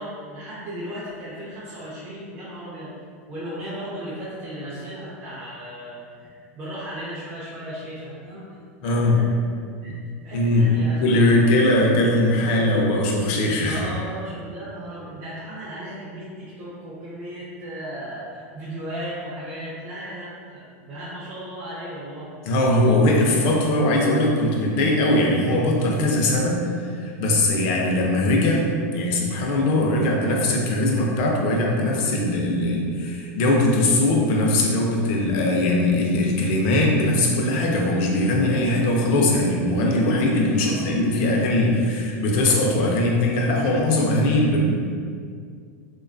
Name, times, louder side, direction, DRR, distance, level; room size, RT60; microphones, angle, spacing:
voice 1, 0.0-2.9 3.3-9.3 9.8-10.0 10.2-11.4 13.6-22.3 40.5-40.9, equal, 25° right, -10 dB, 0.5 m, -36 dB
voice 2, 8.8-9.2 10.3-10.7 11.0-13.9 22.4-28.6 28.9-44.8, left 1 dB, 40° left, -1 dB, 0.4 m, -20 dB
2.6 x 2.2 x 2.5 m, 2.1 s
supercardioid pair, 160°, 8 cm